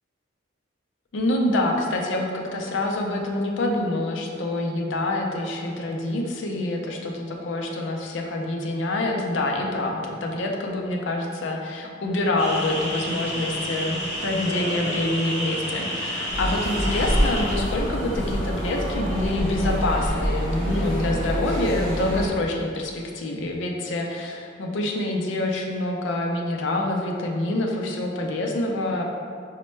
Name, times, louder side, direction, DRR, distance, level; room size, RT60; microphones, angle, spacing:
voice 1, 1.1-29.0, left 1 dB, 70° left, 1 dB, 0.4 m, -26 dB
sound 1, 12.4-17.6, equal, 30° left, 0.6 m, -30 dB
sound 2, 16.3-22.3, equal, 10° left, 1.1 m, -26 dB
4.2 x 2.1 x 3.0 m, 2.3 s
head